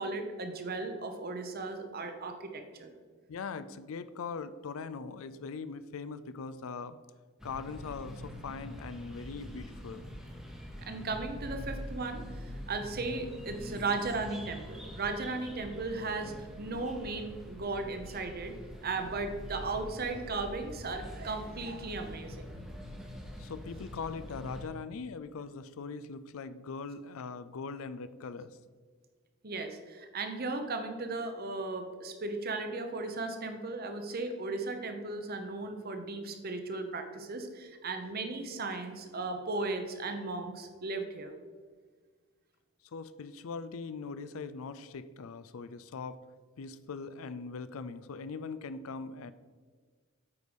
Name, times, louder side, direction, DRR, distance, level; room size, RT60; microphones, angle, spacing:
voice 1, 0.0-2.9 10.8-12.2 12.7-18.5 18.8-22.5 29.4-41.3, right 3 dB, 45° right, 6 dB, 0.9 m, -36 dB
voice 2, 3.3-7.0 7.4-10.1 23.4-28.6 42.9-46.2 46.6-49.3, left 4 dB, 75° left, 14 dB, 0.4 m, -41 dB
sound 1, 7.4-24.7, equal, 5° right, 1.0 m, -44 dB
8.3 x 4.9 x 5.3 m, 1.5 s
head